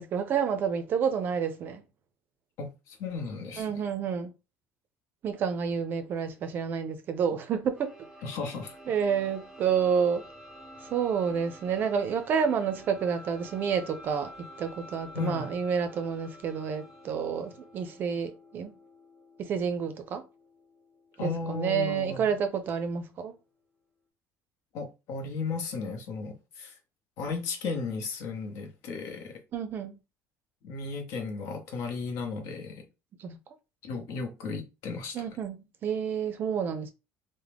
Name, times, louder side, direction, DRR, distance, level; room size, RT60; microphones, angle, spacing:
voice 1, 0.0-1.8 3.6-4.3 5.2-7.9 8.9-10.2 10.9-14.3 14.6-18.8 19.4-20.2 21.2-23.3 29.5-29.9 33.2-33.4 35.1-36.9, right 7 dB, 35° right, 0.5 m, -29 dB
voice 2, 2.6-3.8 8.2-8.8 15.1-15.5 21.2-22.3 24.7-26.7 27.2-29.4 30.6-32.8 33.8-35.2, left 4 dB, 65° left, 0.9 m, -35 dB
sound 1, 7.8-23.4, equal, 5° right, 0.7 m, -50 dB
3.5 x 2.1 x 3.3 m
cardioid pair, 160°, 6 cm